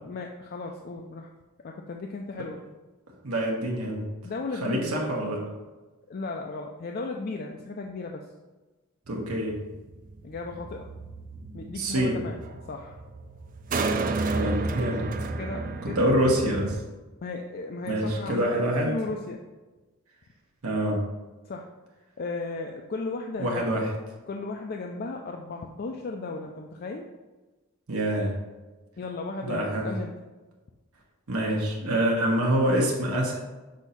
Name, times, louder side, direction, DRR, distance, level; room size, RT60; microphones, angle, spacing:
voice 1, 0.0-1.3 1.6-2.6 4.2-5.0 6.1-8.2 10.2-10.9 11.5-12.4 12.7-13.0 15.0-16.2 17.2-19.4 21.4-21.7 22.2-23.8 24.3-27.1 29.0-30.1, left 3 dB, 40° left, 2 dB, 0.4 m, -35 dB
voice 2, 3.2-4.0 4.6-5.4 9.1-9.6 11.7-12.2 14.3-15.3 15.8-16.8 17.9-18.9 20.6-21.0 23.4-23.9 27.9-28.3 29.4-29.9 31.3-33.4, right 1 dB, 75° right, -1 dB, 1.2 m, -26 dB
sound 1, 9.1-16.8, right 3 dB, 35° right, 0.4 m, -32 dB
6.3 x 2.7 x 5.6 m, 1.2 s
head